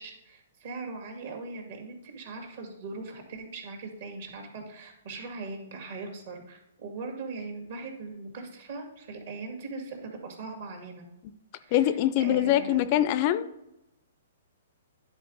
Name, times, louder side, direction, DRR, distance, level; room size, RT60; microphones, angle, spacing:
voice 1, 0.0-11.0 11.6-11.9 12.2-12.8, right 3 dB, 60° right, 2 dB, 2.0 m, -40 dB
voice 2, 11.7-13.5, left 12 dB, 40° left, 14 dB, 0.4 m, -23 dB
10.0 x 4.0 x 3.8 m, 0.88 s
hypercardioid pair, 145°, 0 cm